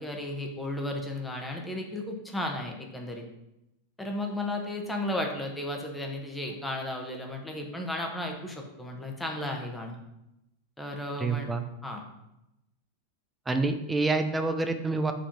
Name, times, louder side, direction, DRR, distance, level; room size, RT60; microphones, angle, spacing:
voice 1, 0.0-3.2 4.0-10.0 10.8-11.5 11.8-12.0, left 1 dB, 5° left, 1 dB, 1.1 m, -34 dB
voice 2, 11.2-11.6 13.5-15.1, right 3 dB, 10° right, 7 dB, 0.5 m, -27 dB
5.1 x 4.2 x 5.3 m, 0.88 s
figure-of-eight pair, 90°, 0 cm